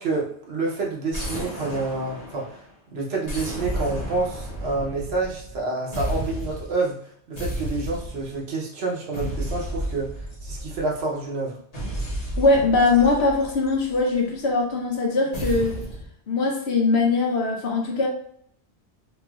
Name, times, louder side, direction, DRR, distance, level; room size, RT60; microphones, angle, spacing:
voice 1, 0.0-2.6 2.9-7.0 7.3-11.6, right 3 dB, 75° right, -2 dB, 1.0 m, -28 dB
sound 1, 1.1-2.7 3.3-5.6 5.9-6.8 7.4-8.4 9.1-11.0 11.7-14.1 15.3-16.1, equal, 40° left, 0.9 m, -32 dB
voice 2, 12.4-15.8 16.3-18.1, left 3 dB, 75° left, 0 dB, 1.0 m, -21 dB
3.1 x 2.6 x 2.3 m, 0.65 s
omnidirectional pair, 1.1 m